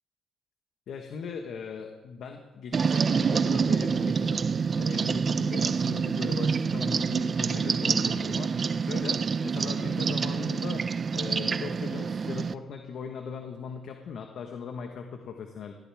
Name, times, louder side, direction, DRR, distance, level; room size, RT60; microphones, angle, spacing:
voice 1, 0.9-4.4 4.8-15.8, left 6 dB, 70° left, 4 dB, 1.3 m, -39 dB
sound 1, 2.7-12.5, right 5 dB, 40° right, 0.5 m, -27 dB
Bass guitar, 5.8-12.0, left 4 dB, 85° left, 3.4 m, -50 dB
18.0 x 16.0 x 3.6 m, 1.2 s
cardioid pair, 90°, 0 cm